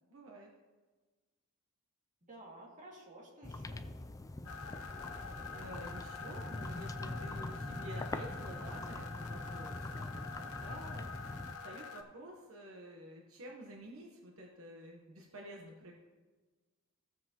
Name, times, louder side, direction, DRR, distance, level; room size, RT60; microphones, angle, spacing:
voice 1, 0.1-0.5 5.5-11.2 11.5-15.9, right 1 dB, 70° right, 0 dB, 1.1 m, -50 dB
voice 2, 2.2-3.9 10.3-10.8, right 1 dB, 35° right, -3 dB, 2.2 m, -54 dB
sound 1, 3.4-11.6, left 2 dB, 15° left, 0.3 m, -43 dB
sound 2, 4.4-12.0, left 5 dB, 75° left, 0.9 m, -46 dB
15.5 x 7.4 x 2.9 m, 1.3 s
head